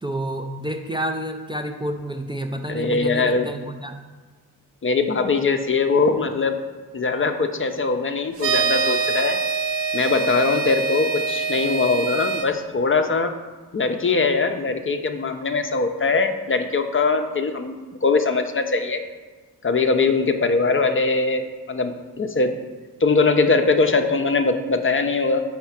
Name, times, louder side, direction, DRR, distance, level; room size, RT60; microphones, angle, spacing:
voice 1, 0.0-4.0, right 1 dB, 10° right, 3 dB, 0.4 m, -29 dB
voice 2, 2.7-3.5 4.8-6.6 6.9-9.4 9.9-13.3 13.7-19.0 19.6-22.6 23.0-25.4, left 4 dB, 30° left, 6 dB, 0.6 m, -21 dB
sound 1, 8.4-12.5, right 5 dB, 90° right, 0.8 m, -24 dB
4.6 x 4.3 x 5.8 m, 1.4 s
supercardioid pair, 50°, 41 cm